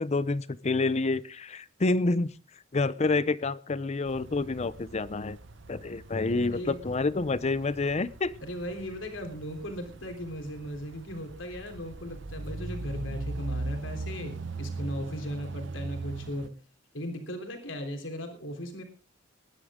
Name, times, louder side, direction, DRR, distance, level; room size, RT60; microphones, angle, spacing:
voice 1, 0.0-2.3 2.7-5.4 5.7-8.3, left 3 dB, 35° left, 18 dB, 0.6 m, -28 dB
sound 1, 4.0-16.5, right 3 dB, 70° right, 0.9 m, -40 dB
voice 2, 6.5-6.8 8.4-16.5 16.9-18.8, equal, 75° left, 5 dB, 3.5 m, -37 dB
20.0 x 11.5 x 3.7 m, 0.36 s
head